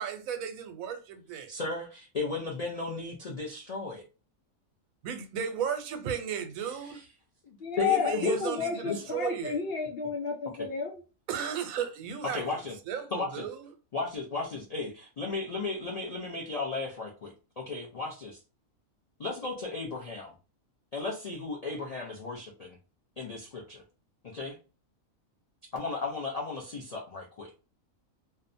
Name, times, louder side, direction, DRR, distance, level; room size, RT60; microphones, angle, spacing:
voice 1, 0.0-1.5 5.0-7.0 7.9-9.6 11.3-12.4 12.9-13.7, right 8 dB, 80° right, 1.0 m, -35 dB
voice 2, 1.5-4.0 6.8-7.0 7.4-8.5 8.8-9.1 10.5-10.7 12.3-12.7 13.1-13.4 13.9-18.4 19.2-20.3 20.9-22.8 23.2-23.8 24.3-24.6 25.7-27.5, left 3 dB, 90° left, 0.3 m, -35 dB
voice 3, 7.6-11.0, left 5 dB, 60° left, 0.7 m, -31 dB
2.7 x 2.1 x 2.5 m
omnidirectional pair, 1.5 m